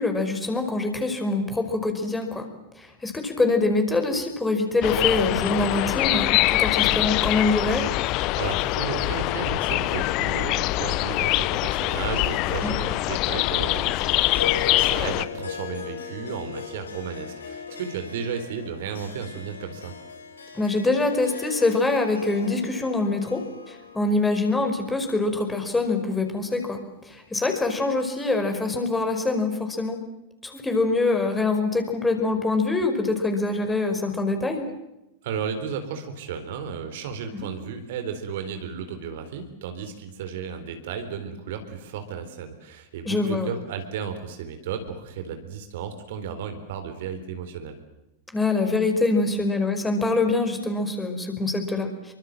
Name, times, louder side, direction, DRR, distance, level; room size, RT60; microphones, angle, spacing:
voice 1, 0.0-2.5 2.8-7.9 12.6-12.7 20.5-30.0 30.4-34.7 37.3-37.5 43.1-43.5 48.3-52.1, left 3 dB, 10° left, 5 dB, 5.1 m, -24 dB
sound 1, 4.8-15.3, left 18 dB, 40° left, 0.9 m, -24 dB
voice 2, 8.3-19.9 35.2-47.8, right 7 dB, 55° right, 7 dB, 3.9 m, -34 dB
Harp, 14.3-26.8, left 6 dB, 70° left, 5.1 m, -38 dB
28.0 x 24.5 x 7.7 m, 0.89 s
figure-of-eight pair, 90°, 0 cm